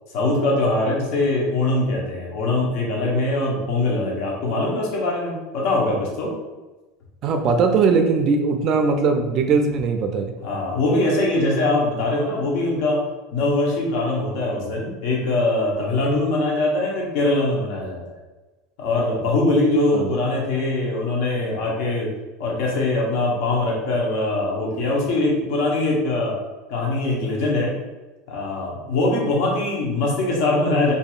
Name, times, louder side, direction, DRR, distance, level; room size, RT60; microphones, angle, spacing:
voice 1, 0.1-6.3 10.4-13.0 13.3-18.0 18.8-22.1 22.4-26.4 26.7-27.7 28.3-30.9, left 2 dB, 65° left, -2 dB, 0.8 m, -22 dB
voice 2, 7.2-10.3 19.9-20.1, right 4 dB, 50° right, 5 dB, 0.3 m, -20 dB
2.7 x 2.5 x 2.4 m, 1.1 s
supercardioid pair, 100°, 0 cm